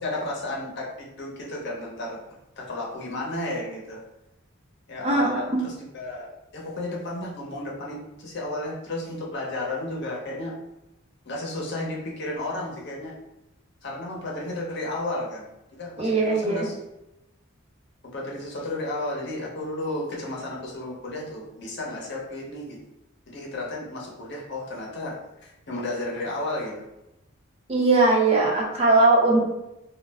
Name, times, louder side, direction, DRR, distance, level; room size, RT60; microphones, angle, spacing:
voice 1, 0.0-2.2 2.6-4.0 4.9-10.6 11.2-13.2 13.8-16.8 18.0-22.8 23.3-26.9, left 2 dB, 55° left, -2 dB, 0.7 m, -33 dB
voice 2, 5.0-5.6 16.0-16.7 27.7-29.4, right 2 dB, 30° right, -2 dB, 0.4 m, -20 dB
2.3 x 2.1 x 3.3 m, 0.92 s
head